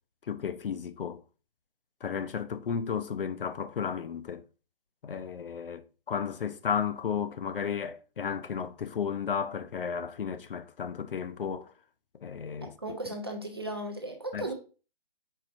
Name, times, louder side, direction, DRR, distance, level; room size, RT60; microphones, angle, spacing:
voice 1, 0.3-1.2 2.0-4.4 5.0-11.7 12.2-12.7 14.3-14.5, left 7 dB, 65° left, 0.5 m, -33 dB
voice 2, 12.8-14.5, right 1 dB, 25° right, 0.5 m, -36 dB
4.7 x 4.0 x 2.5 m
hypercardioid pair, 170°, 29 cm